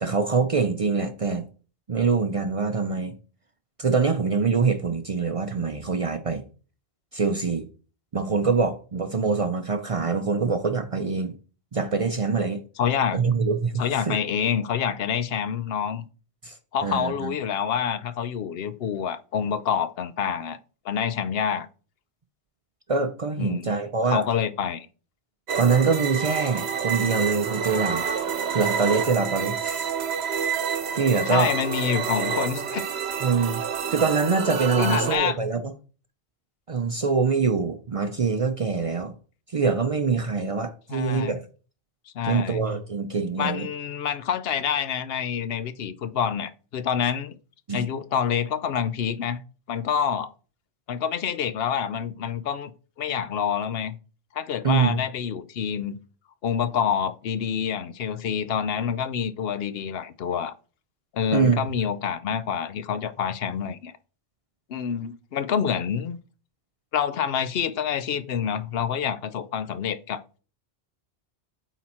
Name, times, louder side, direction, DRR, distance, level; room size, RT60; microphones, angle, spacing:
voice 1, 0.0-1.5 1.9-3.1 3.8-6.4 7.1-7.6 8.1-11.3 11.7-12.6 13.1-13.8 14.1-14.2 16.4-16.6 16.8-17.3 22.9-24.2 25.6-28.0 28.5-29.9 30.9-31.5 33.2-33.6 33.9-35.6 36.7-39.1 39.5-41.4 42.3-43.7 47.7-47.9 54.6-55.0 61.3-61.6, right 5 dB, 40° right, 0.5 m, -24 dB
voice 2, 12.8-13.2 13.8-16.0 16.7-20.6 20.8-21.7 23.4-23.7 24.1-24.9 31.3-32.8 34.8-35.4 40.9-41.4 42.1-42.6 43.4-47.4 47.7-49.4 49.7-50.3 50.9-52.7 53.0-54.0 54.3-56.0 56.4-60.5 61.1-63.9 64.7-66.2 66.9-70.4, left 8 dB, 70° left, 0.8 m, -27 dB
sound 1, 25.5-35.2, right 7 dB, 75° right, 1.0 m, -28 dB
8.6 x 4.0 x 4.2 m
omnidirectional pair, 1.1 m